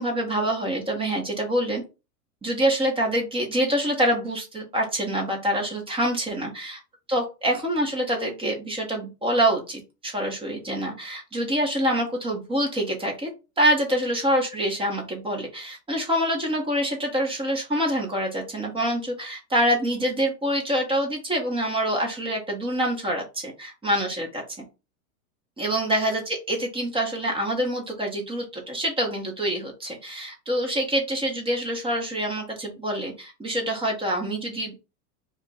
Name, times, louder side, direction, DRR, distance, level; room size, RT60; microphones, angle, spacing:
voice 1, 0.0-1.8 2.4-6.8 7.1-13.3 13.6-24.4 25.6-34.8, equal, 10° right, 1 dB, 0.8 m, -26 dB
2.5 x 2.1 x 3.9 m, 0.29 s
hypercardioid pair, 110°, 48 cm